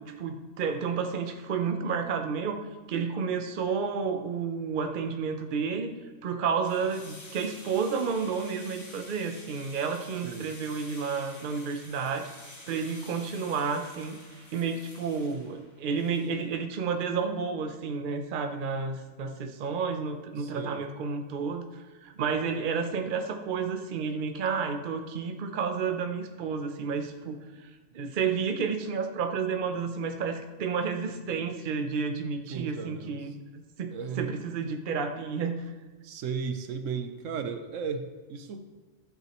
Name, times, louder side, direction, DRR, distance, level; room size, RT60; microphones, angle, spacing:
voice 1, 0.0-5.9 6.2-12.3 12.7-14.2 14.5-27.7 27.9-35.7, right 5 dB, 50° right, 7 dB, 0.8 m, -31 dB
sound 1, 6.6-16.6, left 1 dB, 70° left, 2.1 m, -49 dB
voice 2, 20.3-20.9 32.5-33.3 33.9-34.3 36.0-38.6, right 6 dB, 80° right, 8 dB, 1.0 m, -35 dB
13.0 x 7.9 x 3.1 m, 1.3 s
omnidirectional pair, 1.3 m